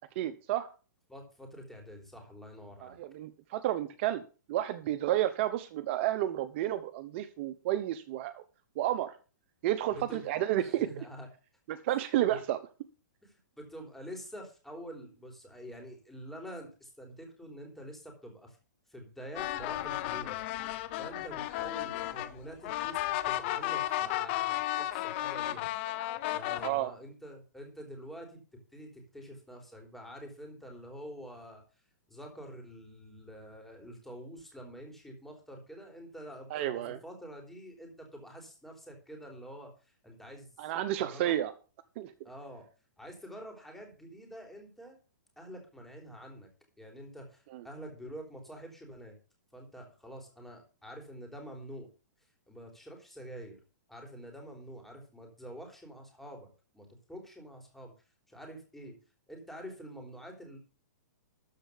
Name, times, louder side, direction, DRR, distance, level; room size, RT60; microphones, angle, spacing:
voice 1, 0.1-0.7 2.8-4.2 4.5-8.4 8.8-9.2 9.6-10.9 11.7-12.6 26.6-26.9 36.5-37.0 40.6-41.5 42.0-42.1 47.5-47.6, right 13 dB, 40° right, 12 dB, 0.9 m, -31 dB
voice 2, 1.1-3.0 9.9-10.3 10.6-11.3 11.9-12.0 12.2-12.4 13.2-18.6 18.9-20.4 21.0-25.7 26.3-31.6 32.1-40.5 41.0-41.4 42.2-42.7 43.0-45.0 45.4-46.5 46.8-49.1 49.5-51.9 52.5-53.6 53.9-57.9 58.3-59.0 59.3-60.6, equal, ahead, 2 dB, 3.5 m, -47 dB
sound 1, 19.3-26.7, left 15 dB, 40° left, 0.9 m, -34 dB
13.5 x 4.6 x 8.3 m, 0.35 s
hypercardioid pair, 145°, 9 cm